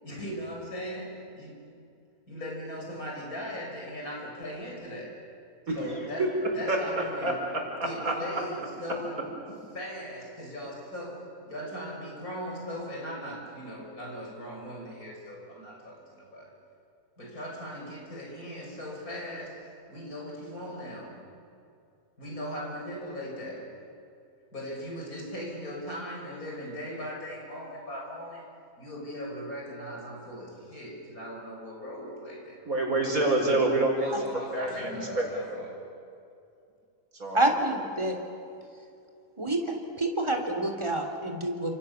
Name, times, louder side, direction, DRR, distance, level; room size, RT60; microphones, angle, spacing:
voice 1, 0.0-1.6 2.3-5.2 5.7-9.2 9.7-16.5 17.2-21.2 22.2-23.7 24.5-28.5 28.8-32.7 34.0-35.8, equal, 75° left, -2 dB, 6.9 m, -39 dB
voice 2, 6.2-6.8 7.2-7.3 7.8-8.2 32.7-33.9 34.5-35.6 37.2-37.4, right 2 dB, 70° right, 0 dB, 5.4 m, -27 dB
voice 3, 37.3-38.2 39.4-41.7, right 1 dB, 20° right, 2 dB, 3.2 m, -28 dB
29.5 x 27.0 x 7.1 m, 2.5 s
omnidirectional pair, 1.5 m